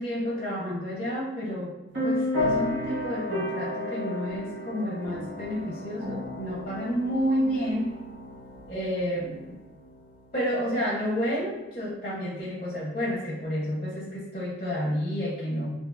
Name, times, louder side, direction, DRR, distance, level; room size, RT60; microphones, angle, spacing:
voice 1, 0.0-1.7 2.0-8.0 8.7-9.6 10.3-15.7, equal, 30° left, -5 dB, 0.6 m, -30 dB
sound 1, 1.9-10.0, left 1 dB, 70° right, 0.9 m, -32 dB
2.7 x 2.3 x 3.3 m, 1.0 s
head